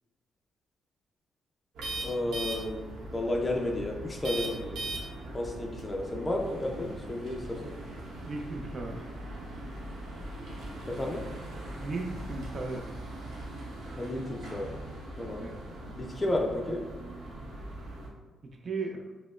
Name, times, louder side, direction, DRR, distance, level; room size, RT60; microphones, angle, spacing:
sound 1, 1.7-18.1, right 1 dB, 85° right, 0.8 m, -40 dB
voice 1, 2.0-2.8 3.1-4.8 5.3-7.7 10.9-11.2 13.9-14.7 15.2-15.5 15.8-16.8, left 1 dB, 20° left, 0 dB, 0.4 m, -32 dB
voice 2, 8.3-9.0 11.8-12.8 15.4-15.6 18.6-19.0, right 3 dB, 45° right, 3 dB, 0.5 m, -35 dB
4.9 x 2.0 x 2.4 m, 1.2 s
cardioid pair, 115°, 0 cm